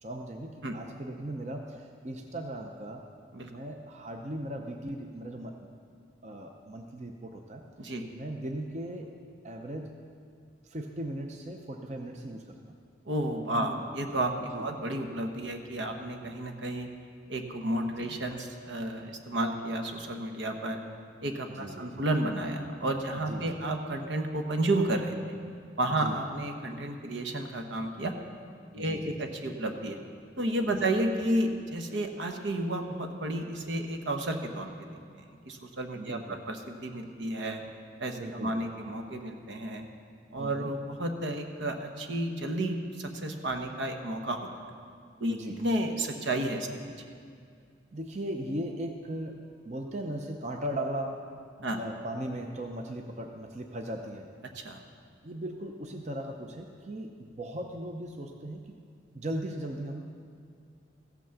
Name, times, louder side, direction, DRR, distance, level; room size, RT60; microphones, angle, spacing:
voice 1, 0.0-3.1 3.4-5.7 6.2-9.1 9.4-10.0 10.6-12.8 13.5-13.8 14.5-14.7 18.0-18.2 21.5-22.0 23.3-23.6 25.9-26.2 28.8-29.2 30.7-30.9 35.9-36.4 38.2-38.6 40.4-40.7 45.3-45.6 47.9-51.2 51.8-54.3 55.2-58.7 59.1-60.2, right 1 dB, 35° right, 3 dB, 0.6 m, -38 dB
voice 2, 13.1-16.9 17.3-20.8 21.2-25.4 25.8-28.1 28.7-30.0 30.4-37.6 38.0-39.8 40.3-44.5 45.2-46.7 51.6-51.8 54.5-54.8, right 1 dB, 75° right, 4 dB, 1.0 m, -32 dB
15.0 x 6.0 x 6.9 m, 2.2 s
head